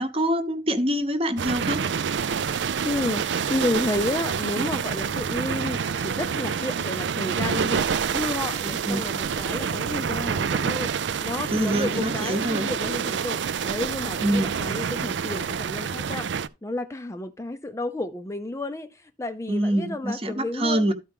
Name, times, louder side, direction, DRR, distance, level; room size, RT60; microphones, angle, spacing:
voice 1, 0.0-1.8 8.9-9.1 11.5-12.7 14.2-14.5 19.5-20.9, right 1 dB, 30° right, 0.9 m, -25 dB
sound 1, 1.4-16.5, right 6 dB, 85° right, 0.4 m, -27 dB
voice 2, 2.8-3.2 3.5-7.9 8.1-10.9 11.2-16.3 16.6-20.9, left 2 dB, 15° left, 0.5 m, -31 dB
13.0 x 4.6 x 3.5 m
head